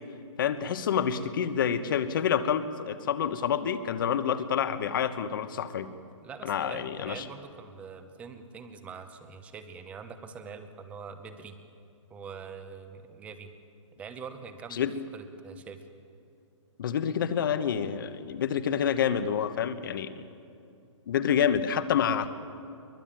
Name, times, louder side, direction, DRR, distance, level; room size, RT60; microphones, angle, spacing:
voice 1, 0.4-5.9 6.4-7.2 14.7-14.9 16.8-20.1 21.1-22.3, left 8 dB, 40° left, 12 dB, 1.2 m, -28 dB
voice 2, 6.2-11.6 12.1-13.5 14.0-14.9 15.1-15.8, right 5 dB, 10° right, 9 dB, 0.9 m, -44 dB
23.0 x 21.0 x 9.0 m, 2.5 s
hypercardioid pair, 170°, 16 cm